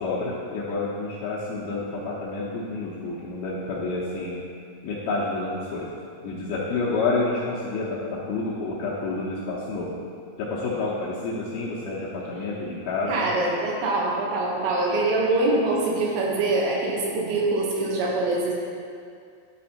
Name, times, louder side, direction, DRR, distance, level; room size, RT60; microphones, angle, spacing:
voice 1, 0.0-4.4 4.8-5.9 6.2-9.9 10.4-13.3, left 3 dB, 75° left, -7 dB, 2.4 m, -29 dB
voice 2, 13.1-18.5, right 2 dB, 85° right, -3 dB, 3.6 m, -24 dB
12.0 x 4.1 x 4.3 m, 2.3 s
omnidirectional pair, 5.4 m